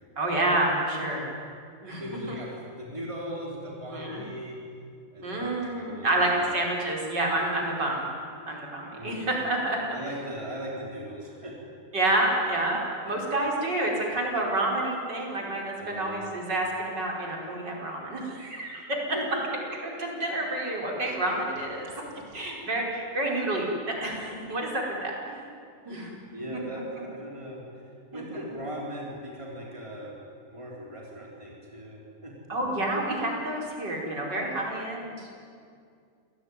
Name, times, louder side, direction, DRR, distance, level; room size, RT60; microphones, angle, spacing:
voice 1, 0.2-1.3 1.8-2.0 3.9-4.2 5.2-8.1 8.5-10.0 11.9-19.2 19.8-22.0 22.3-25.4 25.9-26.1 28.1-28.2 32.5-35.3, right 1 dB, 70° right, -1 dB, 5.6 m, -29 dB
voice 2, 2.0-2.5 2.8-4.5 5.1-6.1 6.4-6.5 8.9-9.3 9.9-11.6 13.1-13.2 15.8-16.2 19.1-19.6 25.9-30.1 30.4-32.3, equal, 15° right, -2 dB, 4.2 m, -39 dB
28.0 x 18.0 x 9.7 m, 2.3 s
omnidirectional pair, 2.0 m